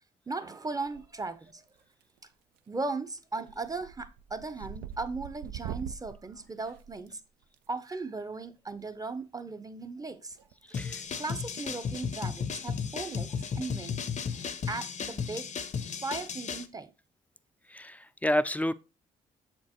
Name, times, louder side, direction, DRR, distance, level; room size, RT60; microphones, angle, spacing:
voice 1, 0.3-1.6 2.7-7.2 7.7-10.4 10.7-14.0 14.7-15.5 16.0-16.9, right 3 dB, 20° right, 0.7 m, -37 dB
sound 1, 0.8-1.4 1.7-2.2 2.6-2.8 3.2-7.6 8.9-9.1 10.3-11.1 11.4-11.6 12.2-12.3 12.5-12.6 13.0-13.2 13.4-13.5 15.1-15.4, right 8 dB, 80° right, 0.4 m, -44 dB
sound 2, 10.7-16.7, left 6 dB, 45° left, 0.6 m, -35 dB
voice 2, 10.7-11.0 17.7-18.7, equal, 10° left, 0.4 m, -29 dB
7.1 x 4.4 x 3.0 m
supercardioid pair, 55°, 17 cm